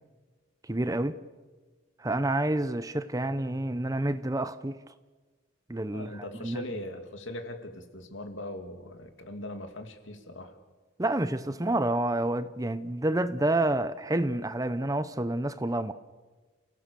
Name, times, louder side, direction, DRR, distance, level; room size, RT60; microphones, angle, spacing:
voice 1, 0.6-1.2 2.0-4.8 5.7-6.6 11.0-15.9, right 1 dB, 15° right, 0.7 m, -29 dB
voice 2, 5.9-10.6, left 1 dB, 70° left, 2.6 m, -40 dB
30.0 x 17.0 x 6.9 m
head